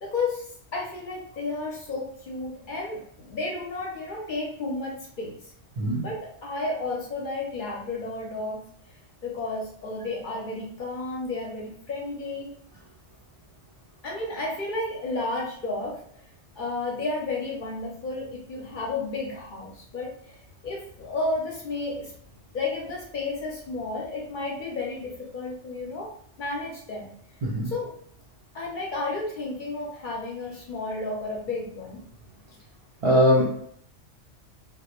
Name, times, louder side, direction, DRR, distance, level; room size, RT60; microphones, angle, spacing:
voice 1, 0.0-5.4 6.0-8.6 8.9-9.0 9.2-12.8 14.0-16.2 16.6-22.1 22.5-26.1 26.4-27.1 27.6-27.9 28.5-32.0, left 2 dB, 55° left, -2 dB, 0.6 m, -32 dB
voice 2, 33.0-33.6, equal, 60° right, -4 dB, 0.3 m, -21 dB
2.3 x 2.0 x 2.9 m, 0.66 s
omnidirectional pair, 1.2 m